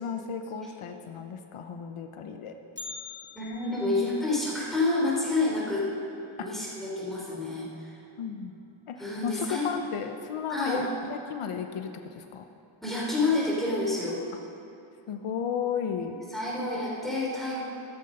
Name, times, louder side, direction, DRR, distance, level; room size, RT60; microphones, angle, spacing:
voice 1, 0.0-2.6 8.2-8.6 8.9-12.5 15.1-16.2, left 7 dB, 85° left, 6 dB, 0.9 m, -34 dB
Bell, 2.8-6.8 7.1-7.2 7.7-7.8 8.6-8.7 9.5-9.7 10.1-10.2, left 4 dB, 20° left, 1.2 m, -47 dB
voice 2, 3.3-5.9 6.4-8.0 9.0-9.7 10.5-10.8 12.8-14.2 16.3-17.6, left 2 dB, ahead, -6 dB, 4.1 m, -28 dB
13.5 x 13.5 x 5.4 m, 2.7 s
wide cardioid pair, 145°, 49 cm